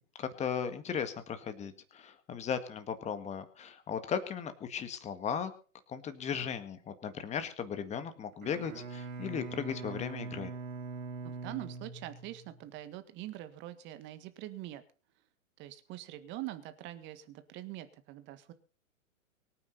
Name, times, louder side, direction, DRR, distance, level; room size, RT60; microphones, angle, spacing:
voice 1, 0.2-5.5 5.9-10.5, left 7 dB, 15° left, 10 dB, 1.8 m, -37 dB
Bowed string instrument, 8.3-12.7, right 4 dB, 75° right, 3.0 m, -42 dB
voice 2, 11.2-14.8 15.6-18.5, right 15 dB, 25° right, 11 dB, 1.7 m, -44 dB
24.0 x 9.6 x 4.1 m, 0.38 s
figure-of-eight pair, 120°, 43 cm